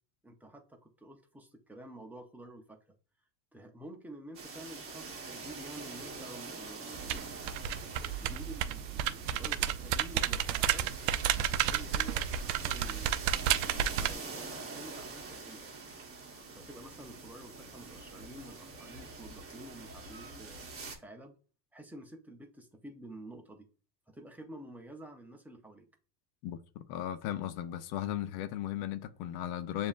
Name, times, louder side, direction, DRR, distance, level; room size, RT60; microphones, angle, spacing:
voice 1, 0.2-2.8 3.5-7.5 8.0-11.1 11.6-15.7 16.5-21.4 21.7-23.7 24.1-25.9, right 1 dB, 5° right, 0.5 m, -50 dB
sound 1, 4.3-21.0, right 3 dB, 25° right, 1.1 m, -45 dB
sound 2, 6.9-14.1, right 10 dB, 70° right, 0.5 m, -32 dB
voice 2, 26.4-29.9, left 11 dB, 65° left, 0.6 m, -36 dB
6.9 x 2.7 x 2.4 m
supercardioid pair, 120°, 49 cm